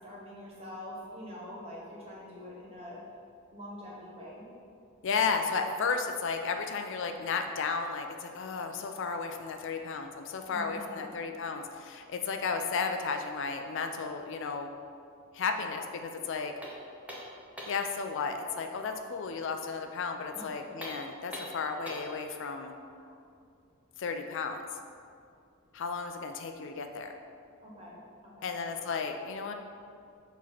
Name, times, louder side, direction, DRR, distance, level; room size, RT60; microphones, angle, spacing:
voice 1, 0.0-3.0 3.5-4.4 10.5-11.1 20.3-20.5 22.9-23.1 27.6-28.0 28.2-28.5, left 1 dB, 30° right, -5 dB, 1.5 m, -45 dB
voice 2, 5.0-14.7 15.3-16.5 17.7-22.7 24.0-24.6 25.7-27.1 28.4-29.5, left 5 dB, 60° left, 5 dB, 0.4 m, -33 dB
sound 1, 16.6-17.9 20.7-22.2, equal, 5° right, 0.9 m, -43 dB
7.1 x 3.0 x 5.8 m, 2.4 s
head